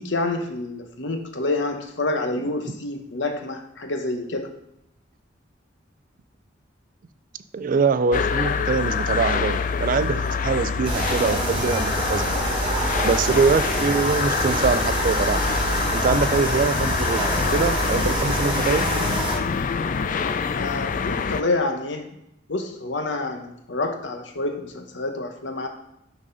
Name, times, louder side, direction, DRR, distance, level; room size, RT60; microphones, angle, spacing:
voice 1, 0.0-4.6 20.6-22.1 22.5-25.7, left 2 dB, 65° left, 5 dB, 1.0 m, -28 dB
voice 2, 7.5-12.2 13.0-15.6 15.9-18.9, right 4 dB, 45° right, 12 dB, 0.3 m, -23 dB
sound 1, 8.1-21.4, left 6 dB, 40° left, 0.3 m, -26 dB
sound 2, 10.8-19.4, right 1 dB, 25° right, 1.4 m, -26 dB
6.2 x 4.1 x 5.3 m, 0.80 s
head